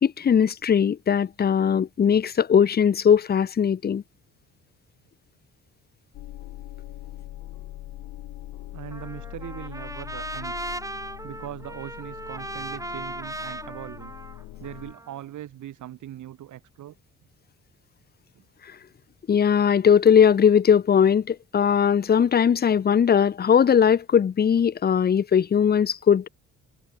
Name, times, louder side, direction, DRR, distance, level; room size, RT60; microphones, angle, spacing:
voice 1, 0.0-4.0 19.3-26.3, left 7 dB, 30° left, 0.7 m, -19 dB
sound 1, 6.1-14.9, left 15 dB, 85° left, 7.5 m, -41 dB
voice 2, 8.7-10.6 11.2-14.1 14.6-17.0 18.4-18.5, right 12 dB, 75° right, 7.0 m, -40 dB
Trumpet, 8.9-15.2, right 1 dB, 10° right, 6.2 m, -37 dB
cardioid pair, 90°, 30 cm